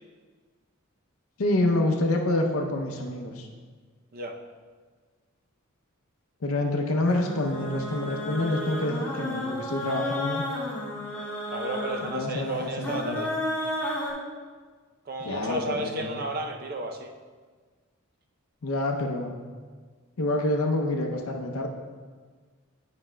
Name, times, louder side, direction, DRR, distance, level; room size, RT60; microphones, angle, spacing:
voice 1, 1.4-3.5 6.4-10.4 12.1-13.2 15.3-16.1 18.6-19.4 20.2-21.7, left 1 dB, 75° left, 1 dB, 0.6 m, -27 dB
sound 1, 7.1-14.1, left 1 dB, 10° left, 1.6 m, -32 dB
voice 2, 11.5-13.3 15.1-17.1, right 2 dB, 45° right, 4 dB, 0.5 m, -33 dB
9.4 x 5.8 x 2.2 m, 1.5 s
head